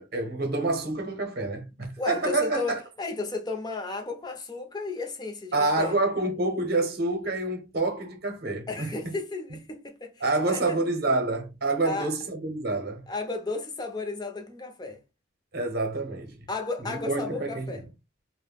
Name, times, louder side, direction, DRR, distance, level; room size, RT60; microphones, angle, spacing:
voice 1, 0.0-2.8 5.5-9.2 10.2-13.0 15.5-16.3 16.8-17.8, right 2 dB, 55° right, 0.7 m, -28 dB
voice 2, 2.0-5.9 8.7-10.8 11.8-12.1 13.1-15.0 16.5-17.8, left 3 dB, 20° left, 0.5 m, -33 dB
2.2 x 2.1 x 3.3 m
head